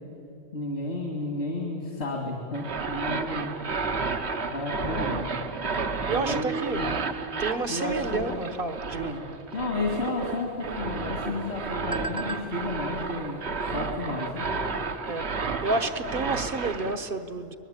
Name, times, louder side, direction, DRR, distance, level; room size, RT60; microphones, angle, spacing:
voice 1, 0.5-3.5 4.4-5.3 6.1-6.9 7.7-8.4 9.0-9.2 9.5-13.4 13.7-14.5, left 2 dB, 65° left, 1 dB, 2.6 m, -32 dB
sound 1, 2.5-17.0, right 4 dB, 70° right, 1.5 m, -32 dB
voice 2, 6.1-6.8 7.4-9.2 15.1-15.4 15.6-17.6, right 3 dB, 55° right, 9 dB, 1.2 m, -30 dB
sound 2, 9.9-15.0, right 2 dB, 5° right, 0.8 m, -43 dB
24.0 x 20.0 x 8.9 m, 2.7 s
omnidirectional pair, 1.2 m